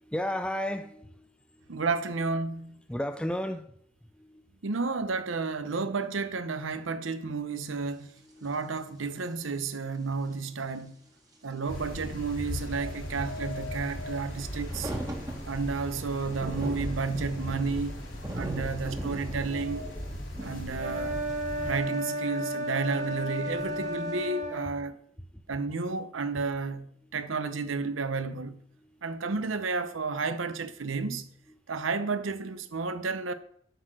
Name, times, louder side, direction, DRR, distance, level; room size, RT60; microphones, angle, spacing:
voice 1, 0.0-1.9 2.4-3.8 4.1-4.5 8.2-8.6 11.0-11.6 20.1-20.6 25.2-25.7 27.0-27.2 28.8-29.3 31.5-31.9 32.8-32.9, left 1 dB, 5° left, 0.5 m, -37 dB
voice 2, 1.7-2.7 4.6-8.1 8.4-10.9 11.4-14.9 15.5-17.9 18.3-19.8 20.4-21.2 21.6-25.0 25.5-28.6 29.0-31.3 31.7-33.3, right 4 dB, 75° right, 0.8 m, -32 dB
sound 1, 8.2-8.3 8.4-8.5 9.0-9.6 10.3-10.4 10.7-10.8 11.3-11.6 12.3-24.2, right 1 dB, 20° right, 1.6 m, -42 dB
sound 2, 11.7-21.8, equal, 75° left, 3.5 m, -37 dB
sound 3, 20.8-24.7, right 1 dB, 40° right, 1.4 m, -33 dB
7.9 x 6.6 x 6.1 m
head